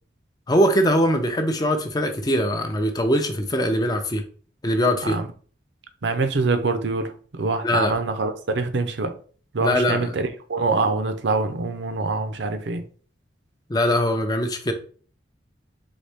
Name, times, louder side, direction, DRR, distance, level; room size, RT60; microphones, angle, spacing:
voice 1, 0.5-4.2 4.6-5.2 7.6-7.9 9.6-10.1 13.7-14.7, equal, 20° left, 0.5 m, -21 dB
voice 2, 6.0-9.1 9.5-12.8, right 3 dB, 70° right, 0.6 m, -25 dB
4.0 x 3.5 x 3.4 m
head